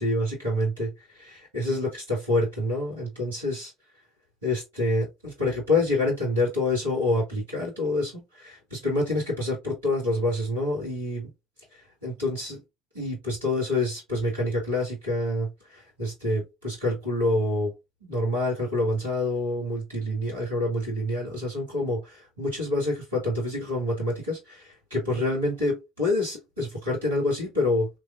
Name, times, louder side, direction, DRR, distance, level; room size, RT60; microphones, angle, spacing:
voice 1, 0.0-3.7 4.4-11.3 11.7-12.6 12.9-17.7 18.0-27.9, left 2 dB, 80° right, 2.0 m, -27 dB
3.3 x 3.2 x 2.5 m
figure-of-eight pair, 60°, 0 cm